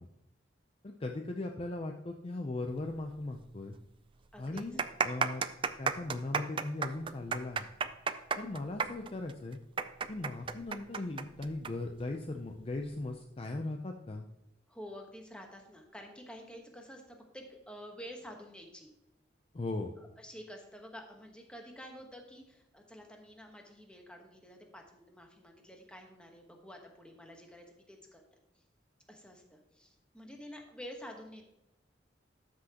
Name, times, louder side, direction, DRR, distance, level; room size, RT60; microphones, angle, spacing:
voice 1, 0.8-3.7 4.4-5.4 5.8-7.7 8.4-9.6 10.1-14.2 19.5-19.9, left 2 dB, 30° left, 3 dB, 0.5 m, -38 dB
sound 1, 3.4-3.5 3.7-3.8 4.5-11.7 12.0-12.1 12.9-13.1, right 6 dB, 25° right, 0.4 m, -33 dB
voice 2, 4.3-4.8 14.7-18.9 20.0-28.2 28.5-28.6 29.1-31.4, equal, 5° left, 2 dB, 1.2 m, -49 dB
12.5 x 6.1 x 2.9 m, 0.89 s
head